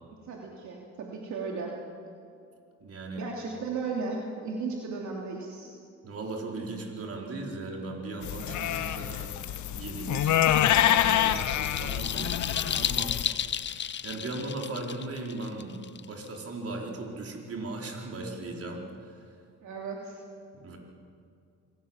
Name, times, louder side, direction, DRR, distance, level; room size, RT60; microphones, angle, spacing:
voice 1, 0.3-1.7 3.2-5.7 19.6-20.2, right 4 dB, 70° right, -1 dB, 3.1 m, -35 dB
voice 2, 2.8-3.2 6.0-13.1 14.0-18.8 20.6-20.8, right 2 dB, 50° right, 1 dB, 4.6 m, -38 dB
sound 1, 8.2-13.3, left 11 dB, 70° left, 1.0 m, -26 dB
sound 2, 10.6-16.4, left 8 dB, 40° left, 0.6 m, -33 dB
25.5 x 17.5 x 7.3 m, 2.4 s
cardioid pair, 90°, 30 cm